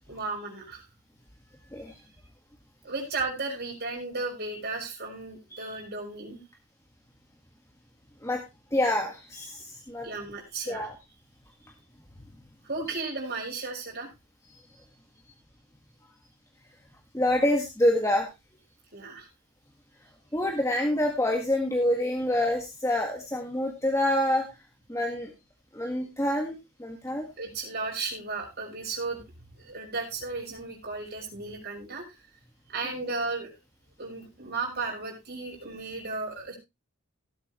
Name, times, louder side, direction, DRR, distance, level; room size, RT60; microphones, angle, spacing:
voice 1, 0.1-0.8 1.8-1.9 2.8-6.4 10.0-10.9 12.6-14.1 18.9-19.3 27.4-29.2 29.6-32.0 32.7-33.5 34.0-36.6, right 3 dB, 45° right, 0 dB, 5.8 m, -34 dB
voice 2, 8.7-10.1 10.7-10.9 17.1-18.3 20.3-24.5 24.9-25.3 25.7-27.2, left 1 dB, 15° left, 2 dB, 1.6 m, -27 dB
17.5 x 8.2 x 3.0 m, 0.24 s
head